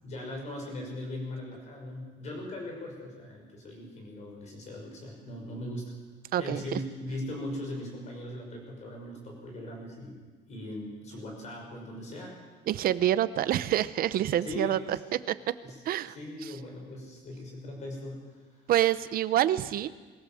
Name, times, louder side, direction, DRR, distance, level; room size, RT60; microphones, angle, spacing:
voice 1, 0.0-5.9 6.4-10.2 10.5-12.3 14.4-14.8 15.6-15.7 16.1-18.4, left 1 dB, 35° left, 1 dB, 6.3 m, -39 dB
voice 2, 6.3-6.8 12.7-15.6 15.8-16.1 16.4-16.6 18.7-19.9, right 12 dB, 50° right, 15 dB, 0.8 m, -27 dB
22.5 x 16.0 x 7.8 m, 1.4 s
cardioid pair, 170°, 19 cm